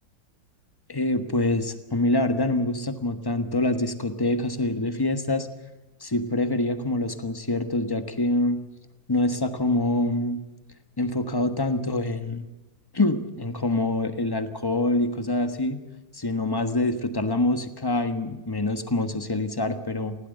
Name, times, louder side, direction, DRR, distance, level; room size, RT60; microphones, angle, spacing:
voice 1, 0.9-5.5 6.0-8.6 9.1-10.4 11.0-12.5 12.9-15.8 16.1-20.2, left 2 dB, 15° left, 9 dB, 1.1 m, -25 dB
20.5 x 16.5 x 8.0 m, 1.1 s
omnidirectional pair, 2.0 m